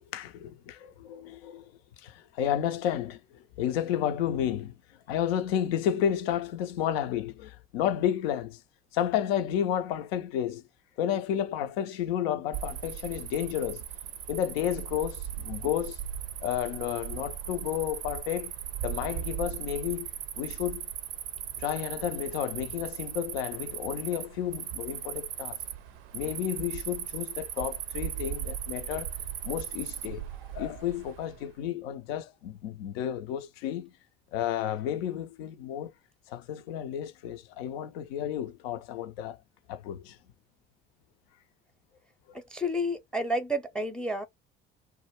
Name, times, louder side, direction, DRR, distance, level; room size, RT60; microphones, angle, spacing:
voice 1, 0.0-1.7 2.0-4.8 5.1-8.6 8.9-10.6 11.0-13.8 14.3-16.0 16.4-18.5 18.8-20.9 21.6-25.6 26.1-29.1 29.4-30.3 30.5-33.9 34.3-35.9 36.3-39.4 39.7-40.2 42.3-42.4, left 10 dB, 80° left, 0.5 m, -31 dB
Cricket, 12.5-31.4, right 10 dB, 70° right, 0.5 m, -38 dB
voice 2, 42.3-44.3, equal, 5° left, 0.5 m, -31 dB
2.1 x 2.1 x 2.9 m
hypercardioid pair, 50°, 30 cm